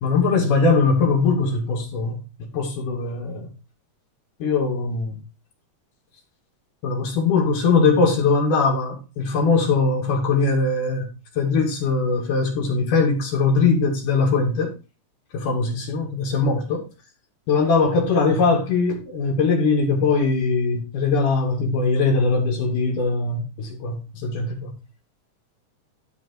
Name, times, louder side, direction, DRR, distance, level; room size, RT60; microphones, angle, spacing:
voice 1, 0.0-3.5 4.4-5.2 6.8-14.7 15.3-16.9 17.5-24.7, left 4 dB, 85° left, 3.6 m, -21 dB
12.0 x 4.3 x 4.3 m
omnidirectional pair, 3.6 m